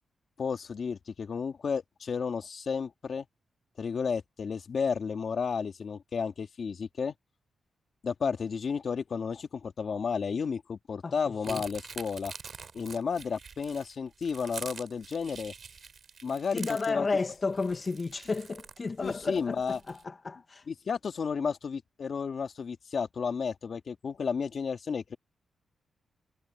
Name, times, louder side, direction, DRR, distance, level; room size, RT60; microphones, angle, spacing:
voice 1, 0.4-3.3 3.8-7.1 8.0-12.3 12.7-15.5 16.2-16.6 16.9-17.1 19.0-19.8 20.7-25.2, left 6 dB, 55° left, 2.2 m, -32 dB
sound 1, 11.4-20.0, right 5 dB, 50° right, 4.2 m, -46 dB
voice 2, 16.5-20.6, left 4 dB, 35° left, 1.6 m, -32 dB
cardioid pair, 105°, 0 cm